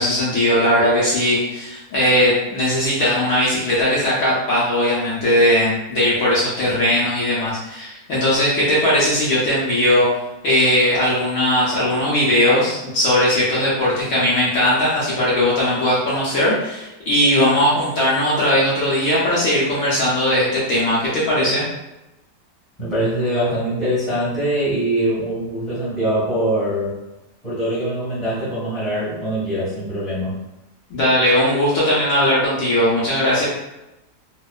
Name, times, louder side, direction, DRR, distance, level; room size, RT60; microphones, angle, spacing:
voice 1, 0.0-10.1 10.4-21.6 30.9-33.5, left 1 dB, 65° left, -8 dB, 1.0 m, -18 dB
voice 2, 22.8-27.0 27.4-30.3, right 1 dB, ahead, -9 dB, 1.0 m, -23 dB
2.9 x 2.1 x 2.3 m, 0.96 s
omnidirectional pair, 1.8 m